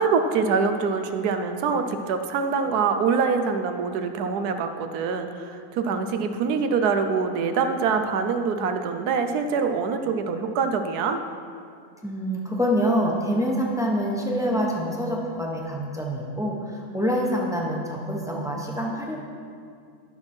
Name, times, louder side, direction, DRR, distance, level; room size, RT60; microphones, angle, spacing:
voice 1, 0.0-11.2, right 5 dB, 90° right, 7 dB, 1.2 m, -24 dB
voice 2, 12.0-19.2, equal, 5° right, -2 dB, 0.8 m, -26 dB
13.0 x 6.1 x 4.4 m, 2.3 s
omnidirectional pair, 1.6 m